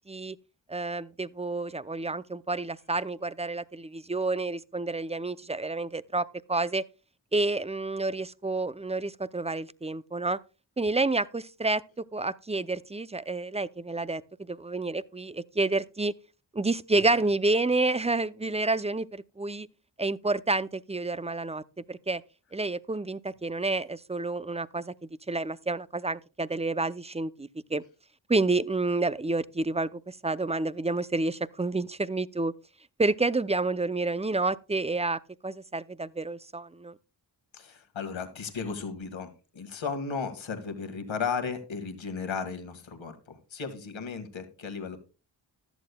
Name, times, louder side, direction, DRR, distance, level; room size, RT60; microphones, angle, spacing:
voice 1, 0.7-6.8 7.3-10.4 10.8-11.8 12.1-16.1 16.5-19.7 20.0-21.6 21.9-22.2 22.5-24.9 25.3-27.8 28.3-32.5 33.0-36.9, right 2 dB, 15° right, 0.5 m, -29 dB
voice 2, 37.5-45.0, left 5 dB, 75° left, 1.9 m, -35 dB
15.5 x 11.5 x 2.3 m
cardioid pair, 45°, 47 cm